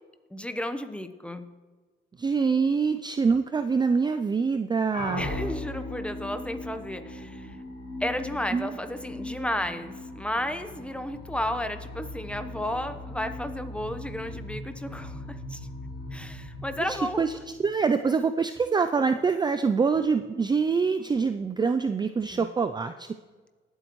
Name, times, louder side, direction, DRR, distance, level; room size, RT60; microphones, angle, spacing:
voice 1, 0.3-1.5 5.1-7.6 8.0-15.6 16.1-17.2 22.3-22.5, left 1 dB, 5° left, 9 dB, 1.0 m, -33 dB
voice 2, 2.2-5.3 8.5-8.7 16.9-17.3 17.6-23.1, right 5 dB, 20° right, 9 dB, 0.4 m, -25 dB
sound 1, 4.9-17.8, left 2 dB, 80° left, 4.0 m, -39 dB
19.5 x 8.1 x 3.1 m, 1.3 s
cardioid pair, 90°, 20 cm